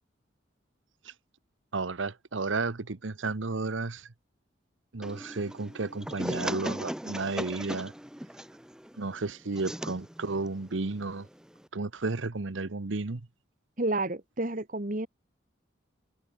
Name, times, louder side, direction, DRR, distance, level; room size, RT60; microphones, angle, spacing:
voice 1, 1.7-4.1 4.9-7.9 9.0-11.3 11.7-13.2, right 3 dB, 80° right, 1.0 m, -32 dB
sound 1, 5.0-11.7, equal, 5° right, 1.2 m, -38 dB
voice 2, 13.8-15.1, right 2 dB, 40° right, 1.7 m, -30 dB
head